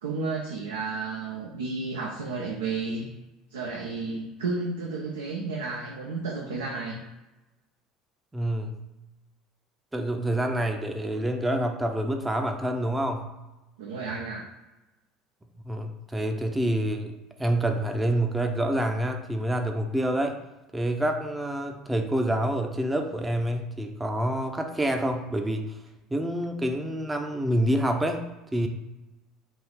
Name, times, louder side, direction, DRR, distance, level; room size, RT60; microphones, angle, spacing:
voice 1, 0.0-3.1 3.5-7.0 13.8-14.5, right 3 dB, 75° right, -1 dB, 0.5 m, -32 dB
voice 2, 8.3-8.8 9.9-13.3 15.6-20.4 20.7-25.8 26.1-28.2 28.5-28.7, right 1 dB, 15° right, 4 dB, 0.6 m, -27 dB
3.6 x 2.6 x 4.5 m, 1.0 s
figure-of-eight pair, 65°, 0 cm